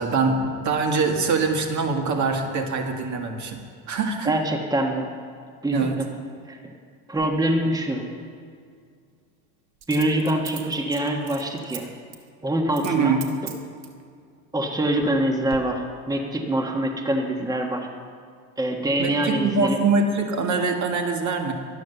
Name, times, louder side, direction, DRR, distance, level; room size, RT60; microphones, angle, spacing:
voice 1, 0.0-3.6 3.9-4.3 5.7-6.0 12.8-13.2 19.0-21.5, right 4 dB, 50° right, 3 dB, 1.8 m, -23 dB
voice 2, 4.2-5.1 5.6-6.1 6.5-6.7 7.1-8.0 9.9-11.9 12.4-13.2 14.5-17.9 18.6-19.8, right 1 dB, 10° right, 2 dB, 1.4 m, -24 dB
Coin (dropping), 7.1-7.3 9.8-11.8 12.1-12.3 12.7-13.0 13.2-14.0 14.6-15.2 15.5-15.6, right 9 dB, 75° right, 1.5 m, -39 dB
12.5 x 9.4 x 6.8 m, 2.2 s
cardioid pair, 105°, 38 cm